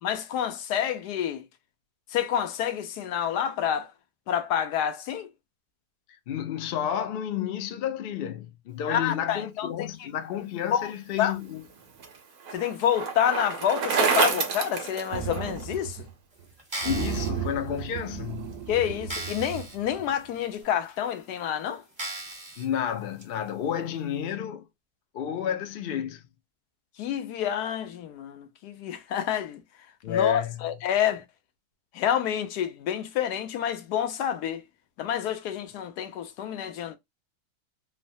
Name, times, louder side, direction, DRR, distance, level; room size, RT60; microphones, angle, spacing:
voice 1, 0.0-1.5 2.1-3.9 4.3-5.3 8.9-10.1 10.7-10.9 11.2-11.4 12.5-16.0 18.7-21.8 27.0-29.6 30.1-31.2 31.9-34.6 35.0-37.0, left 9 dB, 85° left, 1.2 m, -28 dB
voice 2, 6.3-11.6 16.8-18.5 22.6-24.6 25.1-26.2 30.0-30.6, left 9 dB, 70° left, 0.5 m, -31 dB
Bicycle, 11.3-15.8, right 5 dB, 70° right, 1.2 m, -28 dB
sound 1, 15.1-16.1 16.4-16.5 16.8-20.2, right 7 dB, 90° right, 1.3 m, -35 dB
sound 2, 16.6-17.3 18.0-18.1 18.5-18.6 19.1-19.8 20.2-20.3 21.1-21.2 22.0-22.7 23.2-23.3, right 2 dB, 20° right, 1.2 m, -36 dB
3.2 x 2.1 x 2.5 m
omnidirectional pair, 1.7 m